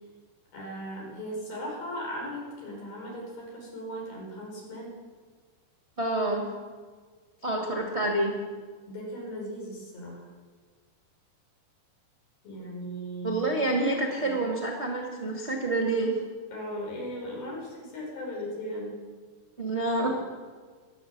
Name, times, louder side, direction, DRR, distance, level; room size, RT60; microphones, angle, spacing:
voice 1, 0.5-4.9 8.8-10.2 12.4-13.7 14.2-14.3 16.5-19.0, equal, 55° left, -2 dB, 6.4 m, -37 dB
voice 2, 6.0-6.5 7.4-8.4 13.2-16.2 19.6-20.2, right 2 dB, 80° right, -2 dB, 0.6 m, -27 dB
15.0 x 12.0 x 7.3 m, 1.5 s
omnidirectional pair, 5.0 m